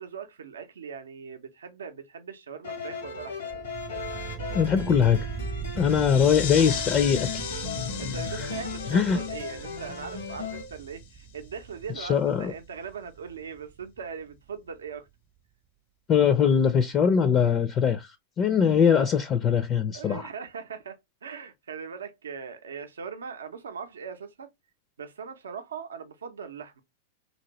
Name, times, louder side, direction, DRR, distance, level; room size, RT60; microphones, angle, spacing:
voice 1, 0.0-3.7 8.0-15.1 19.9-24.5 25.0-26.8, right 6 dB, 90° right, 0.5 m, -40 dB
sound 1, 2.6-10.7, left 5 dB, 90° left, 1.3 m, -36 dB
sound 2, 3.5-14.5, right 6 dB, 35° right, 0.4 m, -40 dB
voice 2, 4.5-5.2 5.7-7.3 8.3-8.5 8.9-9.2 12.0-12.5 16.1-20.3, left 7 dB, 35° left, 0.4 m, -22 dB
sound 3, 5.8-11.1, left 8 dB, 70° left, 0.6 m, -38 dB
2.9 x 2.6 x 2.9 m
hypercardioid pair, 110°, 0 cm